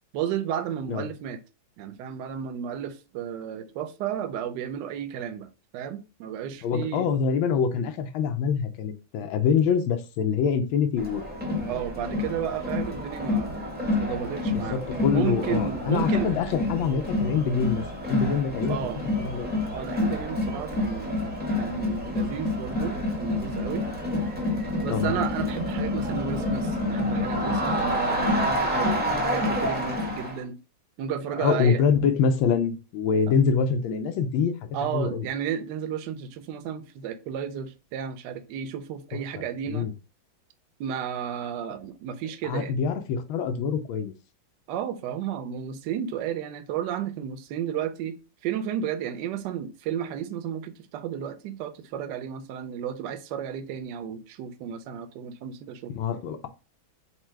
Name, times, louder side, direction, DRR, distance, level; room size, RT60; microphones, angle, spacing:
voice 1, 0.1-1.4 1.8-5.5 5.7-7.1 11.7-14.8 15.1-16.4 18.7-19.0 19.7-21.3 21.6-23.9 24.8-30.6 31.0-31.8 34.7-39.9 40.8-42.7 44.7-48.2 48.4-55.9, right 8 dB, 70° right, 1.1 m, -33 dB
voice 2, 6.6-11.2 14.5-18.8 19.2-19.7 24.9-25.1 31.3-34.6 34.9-35.3 39.4-39.9 42.4-44.1 56.0-56.5, left 6 dB, 90° left, 1.4 m, -25 dB
Crowd, 11.0-30.4, left 1 dB, 15° right, 0.3 m, -28 dB
4.3 x 2.2 x 4.5 m
omnidirectional pair, 2.2 m